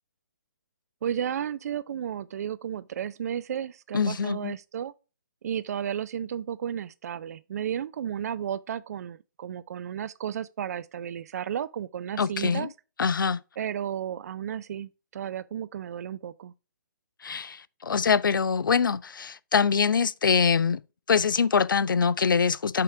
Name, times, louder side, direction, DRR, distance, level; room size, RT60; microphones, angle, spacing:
voice 1, 1.0-4.9 5.4-12.7 13.6-16.5, right 9 dB, 50° right, 0.4 m, -33 dB
voice 2, 3.9-4.5 12.2-12.7 13.0-13.4 17.2-20.8 21.1-22.8, left 6 dB, 85° left, 0.4 m, -24 dB
6.7 x 3.5 x 4.6 m
hypercardioid pair, 140°, 11 cm